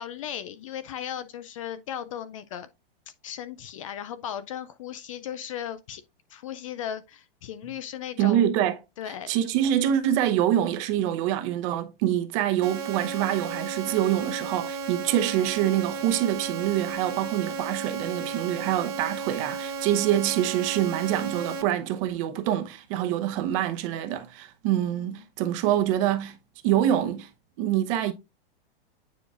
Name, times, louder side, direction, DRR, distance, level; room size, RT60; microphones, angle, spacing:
voice 1, 0.0-2.7 3.2-6.0 6.3-8.5 9.0-9.3 24.9-25.1, left 9 dB, 35° left, 0.4 m, -36 dB
voice 2, 8.2-8.8 9.3-26.4 26.6-27.3 27.6-28.1, right 11 dB, 35° right, 0.9 m, -25 dB
sound 1, 12.6-21.6, right 5 dB, 60° right, 1.6 m, -34 dB
9.3 x 4.8 x 2.4 m
supercardioid pair, 160°, 30 cm